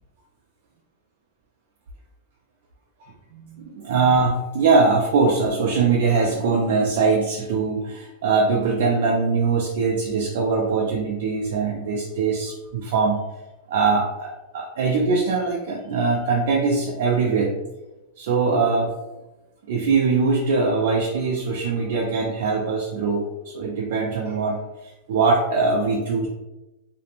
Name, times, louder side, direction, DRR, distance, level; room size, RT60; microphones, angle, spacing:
voice 1, 3.3-13.2 13.7-17.5 18.2-18.9 19.7-26.3, right 4 dB, 65° right, -1 dB, 0.4 m, -22 dB
2.5 x 2.1 x 2.8 m, 1.0 s
supercardioid pair, 160°, 0 cm